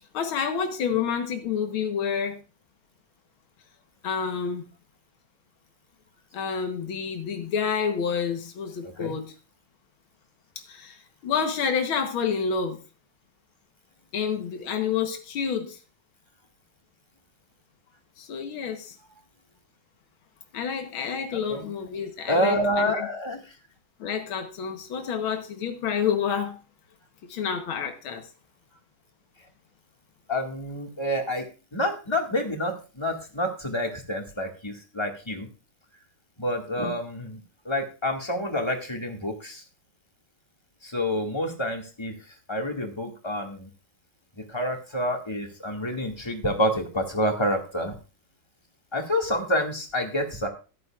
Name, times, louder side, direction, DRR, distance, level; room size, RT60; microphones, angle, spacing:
voice 1, 0.1-2.4 4.0-4.7 6.3-9.3 10.7-12.8 14.1-15.8 18.2-19.0 20.5-23.1 24.0-26.6 27.2-28.3, left 6 dB, 85° left, 5 dB, 2.0 m, -29 dB
voice 2, 8.8-9.1 21.5-21.7 22.3-23.4 30.3-31.5 31.7-35.5 36.4-37.4 37.7-39.6 40.8-42.1 42.5-43.7 44.4-47.9 48.9-50.5, equal, 15° left, 2 dB, 1.9 m, -28 dB
15.0 x 11.5 x 2.4 m, 0.34 s
omnidirectional pair, 2.2 m